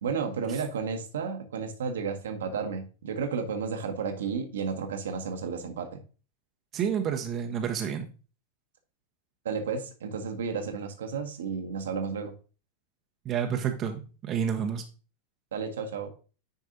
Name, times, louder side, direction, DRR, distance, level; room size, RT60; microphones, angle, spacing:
voice 1, 0.0-6.0 9.4-12.3 15.5-16.1, right 5 dB, 65° right, 5 dB, 1.1 m, -32 dB
voice 2, 6.7-8.1 13.2-14.8, right 8 dB, 30° right, 5 dB, 0.8 m, -29 dB
9.3 x 4.7 x 2.7 m, 0.36 s
figure-of-eight pair, 90°, 0 cm